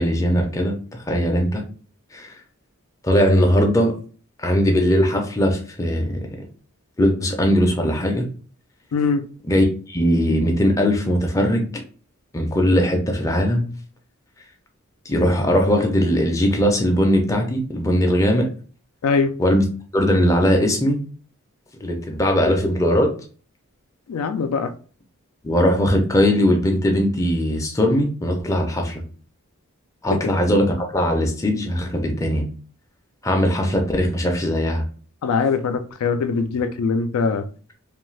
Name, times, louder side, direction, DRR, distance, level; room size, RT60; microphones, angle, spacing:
voice 1, 0.0-1.6 2.1-2.3 3.0-3.9 4.4-6.3 7.0-8.3 9.5-11.6 12.3-13.7 15.1-18.5 19.4-19.6 19.9-21.0 21.8-23.1 25.4-29.0 30.0-32.5 33.2-34.8, equal, 15° left, 2 dB, 0.4 m, -19 dB
voice 2, 8.9-9.2 19.0-19.3 24.1-24.7 35.2-37.4, left 5 dB, 80° left, 9 dB, 0.3 m, -22 dB
2.6 x 2.4 x 3.1 m, 0.40 s
head